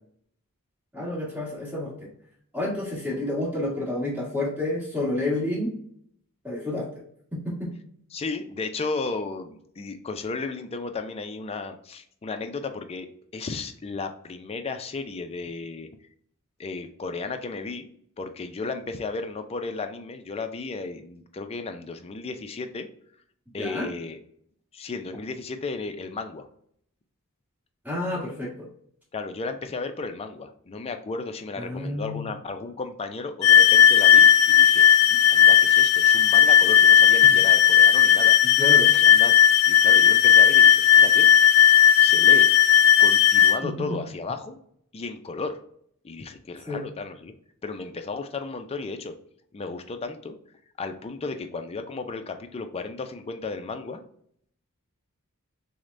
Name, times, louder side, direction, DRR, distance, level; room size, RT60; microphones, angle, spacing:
voice 1, 0.9-2.1 2.5-5.7 6.4-6.9 7.3-7.7 23.6-23.9 27.8-28.7 31.6-32.3 38.6-38.9 43.6-44.0 46.7-46.8, left 1 dB, 5° right, -6 dB, 1.5 m, -29 dB
voice 2, 8.1-13.1 13.3-15.9 16.6-17.9 18.2-22.9 23.5-24.2 24.7-26.5 29.1-38.3 38.8-39.3 39.7-41.3 42.0-42.5 43.0-44.6 44.9-45.6 46.0-47.3 47.6-49.1 49.5-50.4 50.8-54.0, left 3 dB, 25° left, 7 dB, 0.4 m, -34 dB
sound 1, 33.4-43.6, left 10 dB, 85° left, 0.5 m, -16 dB
6.2 x 2.1 x 2.5 m, 0.66 s
head